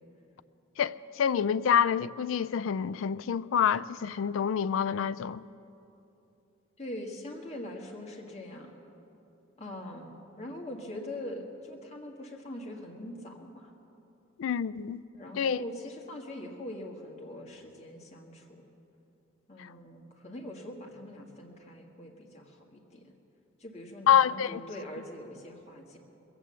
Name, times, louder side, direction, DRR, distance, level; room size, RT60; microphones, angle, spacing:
voice 1, 0.8-5.4 14.4-15.0 15.3-15.6 19.6-19.7 24.1-24.6, left 8 dB, 85° left, 0.3 m, -27 dB
voice 2, 6.8-8.8 9.6-13.7 15.1-18.7 19.5-23.1 23.6-26.0, left 1 dB, 35° left, 1.6 m, -42 dB
20.5 x 8.2 x 7.5 m
head